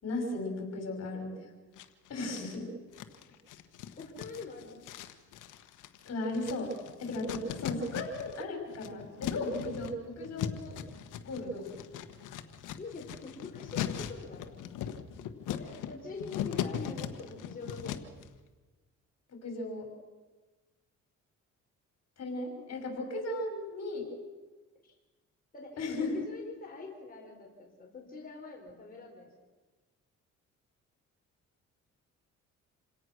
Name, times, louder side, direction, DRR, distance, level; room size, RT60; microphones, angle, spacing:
voice 1, 0.0-1.5 2.1-2.7 6.0-6.7 7.0-10.8 11.2-11.7 19.3-19.9 22.2-24.1 25.8-26.2, left 2 dB, 55° left, 3 dB, 6.1 m, -36 dB
sound 1, 1.8-2.6 2.9-8.4 8.7-18.2, left 10 dB, 90° left, 1.4 m, -39 dB
voice 2, 4.0-4.8 12.8-14.5 15.5-18.1 24.8-24.9 25.5-29.3, left 3 dB, 30° left, -1 dB, 4.5 m, -44 dB
27.5 x 17.5 x 6.4 m, 1.3 s
cardioid pair, 90°, 30 cm